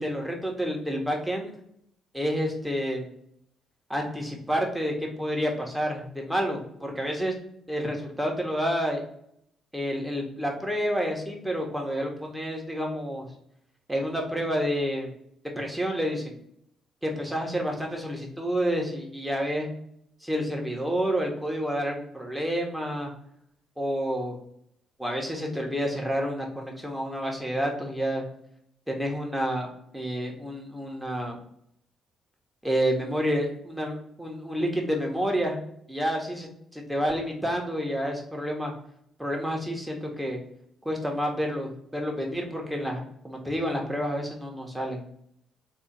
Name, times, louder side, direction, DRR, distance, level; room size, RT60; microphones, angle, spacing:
voice 1, 0.0-1.6 2.1-3.1 3.9-7.3 7.7-9.0 9.7-13.3 13.9-15.1 15.6-16.4 17.0-19.7 20.2-23.1 23.8-24.4 25.0-28.2 28.9-29.7 29.9-31.4 32.6-35.6 35.9-36.5 36.9-38.7 39.2-40.4 40.8-45.0, equal, 5° right, 0 dB, 1.3 m, -29 dB
3.5 x 2.5 x 4.3 m, 0.72 s
hypercardioid pair, 50°, 0 cm